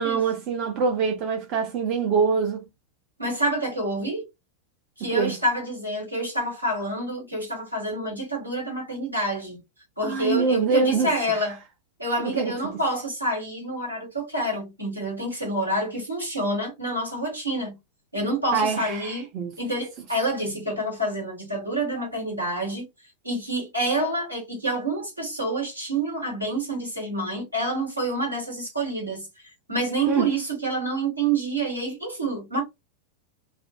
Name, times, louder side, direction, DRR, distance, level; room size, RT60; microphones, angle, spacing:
voice 1, 0.0-2.6 5.0-5.4 10.0-11.4 12.2-12.5 18.5-19.6 30.1-30.3, right 5 dB, 40° right, 0.6 m, -24 dB
voice 2, 3.2-4.3 5.0-9.6 10.0-11.6 12.0-17.8 18.1-19.3 19.6-22.8 23.2-29.3 29.7-32.6, right 1 dB, 85° right, 1.5 m, -27 dB
2.4 x 2.2 x 2.4 m
figure-of-eight pair, 90°, 0 cm